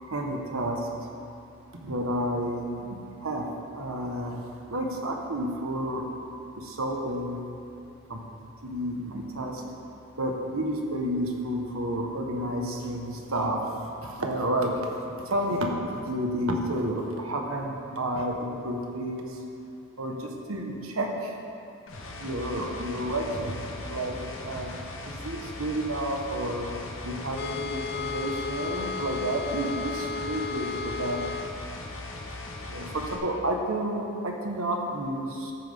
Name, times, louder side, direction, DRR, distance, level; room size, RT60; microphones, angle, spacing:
voice 1, 0.1-0.8 1.7-3.5 3.7-6.1 6.5-7.4 8.1-8.2 8.6-9.6 10.2-19.4 20.0-21.4 22.2-24.7 25.0-26.7 27.0-31.2 31.5-31.6 32.7-35.5, right 1 dB, 90° right, 1 dB, 1.4 m, -31 dB
sound 1, 21.9-33.2, left 2 dB, 80° left, 1.3 m, -39 dB
sound 2, 27.3-31.5, left 4 dB, 50° left, 0.4 m, -34 dB
13.5 x 9.6 x 3.7 m, 2.8 s
head